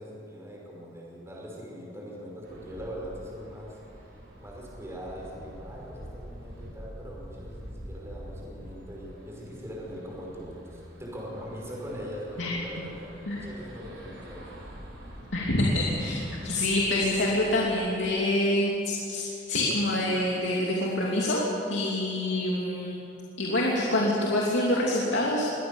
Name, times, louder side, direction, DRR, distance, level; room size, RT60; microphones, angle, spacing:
voice 1, 0.0-3.8 4.4-14.4, equal, 15° right, -3 dB, 5.7 m, -41 dB
sound 1, 2.4-17.9, equal, 70° right, 6.1 m, -46 dB
voice 2, 15.3-16.2 16.4-23.0 23.4-25.4, left 1 dB, 85° left, -3 dB, 2.8 m, -26 dB
22.5 x 18.0 x 7.1 m, 2.7 s
head